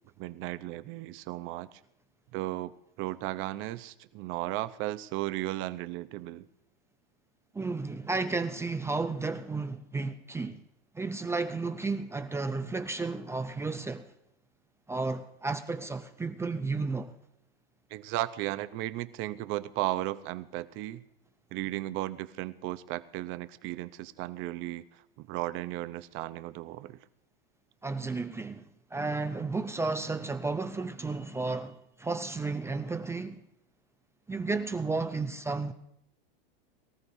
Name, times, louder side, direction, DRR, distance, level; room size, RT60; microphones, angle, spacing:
voice 1, 0.2-1.7 2.3-2.7 3.0-6.5 17.9-21.0 21.5-27.0, right 16 dB, 45° right, 0.7 m, -35 dB
voice 2, 7.5-10.6 10.9-14.1 14.9-17.1 27.8-33.4 34.3-35.7, right 3 dB, 10° right, 0.5 m, -33 dB
23.0 x 14.0 x 2.7 m
supercardioid pair, 125°, 30 cm